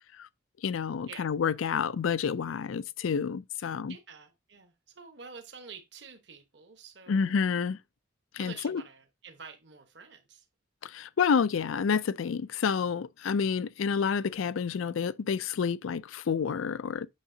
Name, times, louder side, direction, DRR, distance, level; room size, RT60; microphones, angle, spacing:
voice 1, 0.6-3.9 7.1-7.8 8.3-8.8 10.8-17.1, left 6 dB, 85° left, 0.4 m, -29 dB
voice 2, 3.6-7.5 8.4-10.4, right 5 dB, 60° right, 1.2 m, -49 dB
8.4 x 6.5 x 2.7 m
head